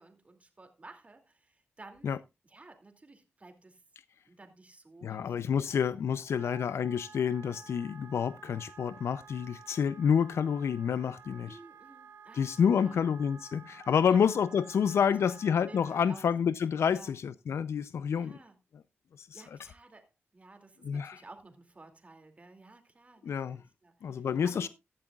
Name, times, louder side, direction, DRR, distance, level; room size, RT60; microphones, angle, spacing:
voice 1, 0.0-2.2 2.4-3.8 4.2-6.6 11.4-13.1 14.0-14.3 15.3-15.4 15.7-16.3 16.9-17.1 18.2-18.6 19.3-24.7, right 3 dB, 30° right, 2.4 m, -54 dB
voice 2, 5.0-11.6 12.3-18.4 19.2-19.3 20.8-21.2 23.2-23.6 24.0-24.7, left 7 dB, 90° left, 0.5 m, -28 dB
Wind instrument woodwind instrument, 6.2-16.1, right 6 dB, 80° right, 3.1 m, -53 dB
15.0 x 11.0 x 2.3 m
wide cardioid pair, 95°, 4 cm